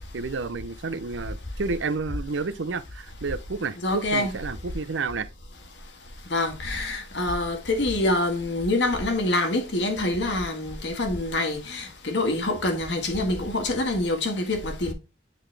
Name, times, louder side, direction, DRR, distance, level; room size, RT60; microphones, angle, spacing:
voice 1, 0.1-5.3, right 4 dB, 75° right, 0.6 m, -30 dB
voice 2, 3.8-4.3 6.3-14.9, left 2 dB, 65° left, 1.6 m, -26 dB
9.2 x 3.8 x 3.3 m
head